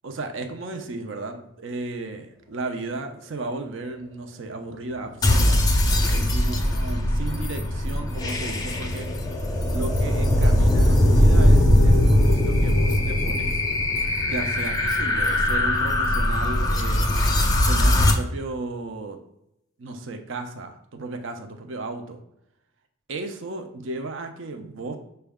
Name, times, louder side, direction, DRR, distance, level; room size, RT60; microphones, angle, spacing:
voice 1, 0.0-5.6 6.1-9.1 9.7-13.6 14.3-17.2 17.7-19.2 19.8-22.2 23.1-25.0, right 2 dB, 60° right, 6 dB, 0.5 m, -34 dB
sound 1, 5.2-18.1, left 1 dB, 20° left, 0.5 m, -20 dB
6.0 x 2.2 x 3.5 m, 0.81 s
head